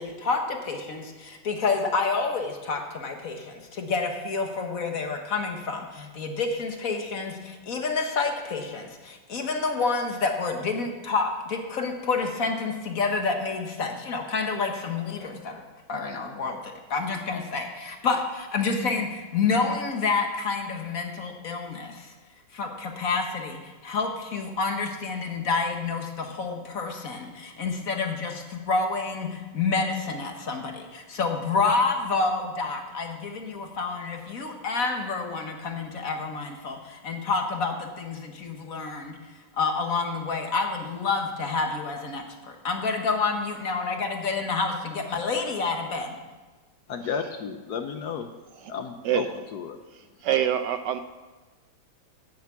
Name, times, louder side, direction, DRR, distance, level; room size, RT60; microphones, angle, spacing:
voice 1, 0.0-22.1 22.5-39.2 39.6-46.2, left 4 dB, 50° left, 4 dB, 1.5 m, -28 dB
voice 2, 46.9-48.3 48.7-49.3 49.5-49.8, left 6 dB, 65° left, 7 dB, 1.2 m, -32 dB
voice 3, 49.9-51.0, right 10 dB, 75° right, 9 dB, 1.1 m, -26 dB
9.4 x 8.1 x 7.2 m, 1.3 s
omnidirectional pair, 2.1 m